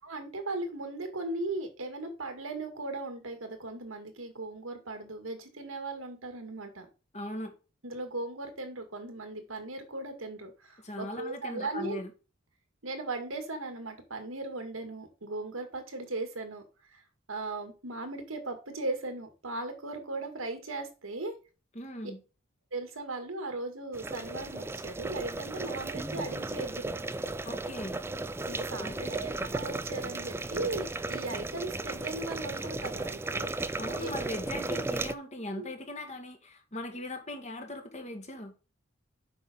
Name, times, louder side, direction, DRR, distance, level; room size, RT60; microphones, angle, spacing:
voice 1, 0.0-6.9 7.8-12.0 12.8-16.6 16.9-17.0 17.3-21.4 22.7-27.0 28.5-33.5 34.0-34.1 35.6-35.7, right 2 dB, 90° right, 2.1 m, -37 dB
voice 2, 7.1-7.5 10.8-12.1 21.7-22.2 27.4-28.0 28.8-29.1 33.8-38.5, left 1 dB, 35° left, 1.6 m, -39 dB
sound 1, 23.9-35.1, right 2 dB, 10° right, 0.3 m, -35 dB
7.8 x 5.8 x 3.7 m
head